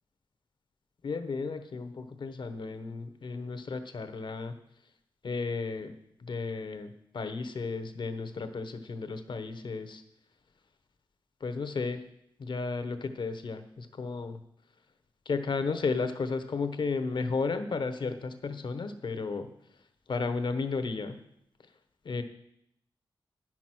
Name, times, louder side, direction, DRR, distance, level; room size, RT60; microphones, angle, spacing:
voice 1, 1.0-4.5 5.2-5.9 6.2-10.0 11.4-12.0 12.4-14.4 15.3-19.5 20.1-21.2 22.0-22.2, left 4 dB, 65° left, 9 dB, 0.9 m, -33 dB
10.5 x 6.0 x 6.1 m, 0.76 s
wide cardioid pair, 90°, 9 cm